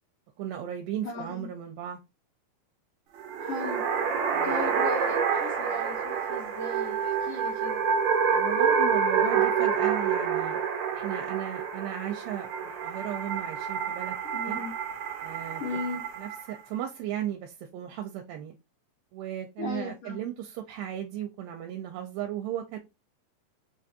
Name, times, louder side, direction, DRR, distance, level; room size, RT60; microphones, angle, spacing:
voice 1, 0.4-2.0 4.3-4.5 8.3-10.6 10.9-14.6 15.2-15.8 16.2-18.6 19.1-22.8, right 11 dB, 85° right, 2.3 m, -36 dB
voice 2, 1.0-1.5 3.4-3.8 4.4-7.8 14.3-14.7 15.6-16.0 19.6-20.2, left 2 dB, 70° left, 1.5 m, -36 dB
sound 1, 3.2-16.6, right 6 dB, 70° right, 1.9 m, -28 dB
5.4 x 2.5 x 2.6 m
omnidirectional pair, 4.1 m